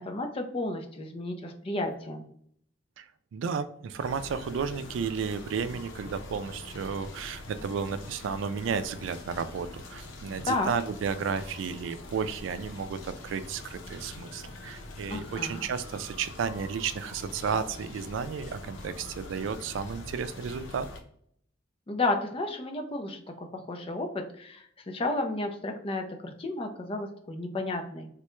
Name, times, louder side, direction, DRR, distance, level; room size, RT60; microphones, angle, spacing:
voice 1, 0.0-2.3 10.5-10.7 15.1-15.6 21.9-23.2 23.5-28.1, left 2 dB, 30° left, 4 dB, 0.5 m, -32 dB
voice 2, 3.0-20.9, right 6 dB, 85° right, 12 dB, 0.3 m, -33 dB
sound 1, 4.0-21.0, left 2 dB, 90° left, 0.6 m, -44 dB
3.6 x 2.2 x 3.0 m, 0.66 s
head